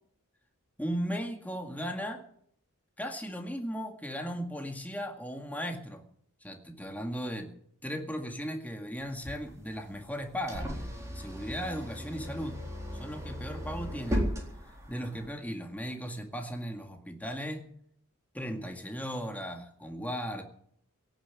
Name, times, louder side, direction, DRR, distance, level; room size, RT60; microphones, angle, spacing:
voice 1, 0.8-2.2 3.0-6.0 6.4-7.5 7.8-10.7 11.1-12.6 12.9-14.3 14.9-17.7 18.3-20.4, equal, 5° left, 4 dB, 2.0 m, -36 dB
sound 1, 9.0-15.3, equal, 15° right, 3.9 m, -36 dB
17.5 x 7.4 x 9.8 m, 0.66 s
head